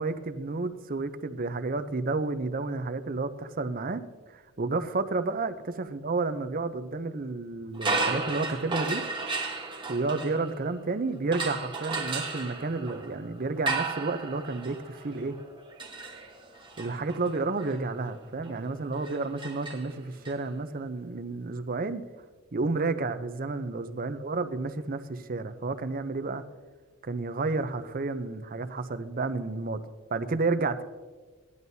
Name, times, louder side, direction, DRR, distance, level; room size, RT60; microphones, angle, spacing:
voice 1, 0.0-4.0 4.3-9.0 9.9-15.4 16.8-22.0 22.5-26.4 27.0-29.8 30.1-30.8, right 3 dB, 40° right, 11 dB, 0.6 m, -31 dB
sound 1, 7.7-10.8 11.3-20.3, right 3 dB, 25° right, 1.2 m, -34 dB
17.0 x 11.0 x 2.7 m, 1.4 s
head